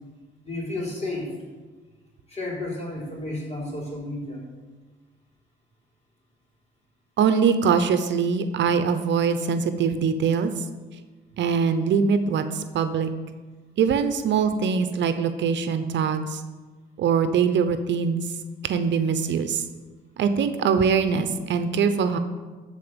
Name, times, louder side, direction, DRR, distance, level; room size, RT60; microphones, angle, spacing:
voice 1, 0.4-1.3 2.3-4.4, left 2 dB, 35° left, -2 dB, 3.8 m, -32 dB
voice 2, 7.2-10.5 11.4-13.1 13.8-16.4 17.0-18.2 18.6-19.6 20.2-22.2, right 6 dB, 65° right, 9 dB, 0.8 m, -22 dB
13.0 x 4.5 x 6.9 m, 1.3 s
cardioid pair, 90°, 20 cm